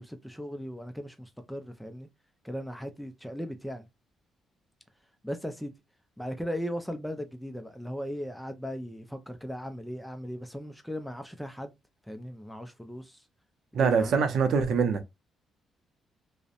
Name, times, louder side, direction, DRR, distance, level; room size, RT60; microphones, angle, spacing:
voice 1, 0.0-2.1 2.4-3.9 5.2-5.7 6.2-11.7 12.1-13.2 13.8-14.1, equal, ahead, 0.4 m, -37 dB
voice 2, 13.7-15.0, right 5 dB, 70° right, 0.5 m, -24 dB
2.6 x 2.1 x 2.4 m
cardioid pair, 90°, 0 cm